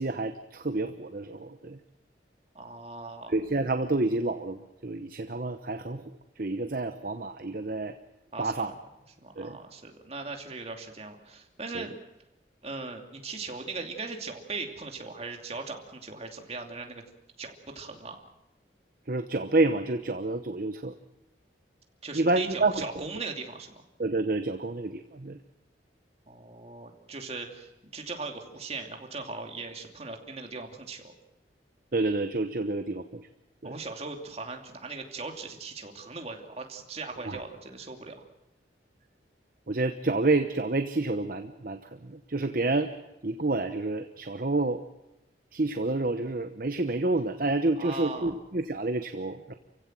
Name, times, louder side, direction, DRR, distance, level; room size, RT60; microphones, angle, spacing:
voice 1, 0.0-1.8 3.3-6.0 6.4-7.9 8.4-8.7 9.4-9.6 11.7-11.8 19.1-20.9 22.1-22.8 24.0-25.4 31.9-33.3 33.6-33.8 37.3-37.4 39.7-42.9 43.2-44.8 45.5-49.5, right 2 dB, 50° right, 8 dB, 1.0 m, -29 dB
voice 2, 2.5-3.3 8.3-8.7 9.2-11.9 12.6-17.0 17.4-18.2 22.0-23.8 26.3-31.1 33.6-38.2 47.8-48.3, right 3 dB, 35° right, 3 dB, 2.7 m, -39 dB
29.0 x 16.0 x 7.5 m, 0.95 s
head